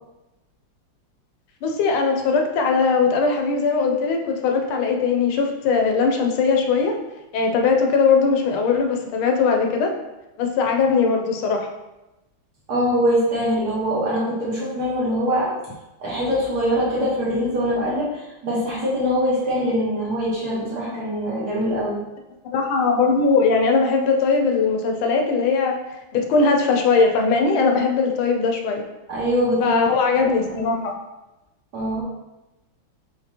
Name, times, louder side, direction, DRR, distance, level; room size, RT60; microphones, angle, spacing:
voice 1, 1.6-7.0 7.3-9.9 10.4-11.7 22.4-25.8 26.1-28.8 29.6-30.9, left 4 dB, 85° left, 3 dB, 1.5 m, -20 dB
voice 2, 12.7-15.5 16.0-22.0 29.1-29.8 30.1-30.7 31.7-32.0, equal, 55° right, -7 dB, 1.7 m, -23 dB
5.0 x 3.5 x 2.8 m, 0.99 s
omnidirectional pair, 2.2 m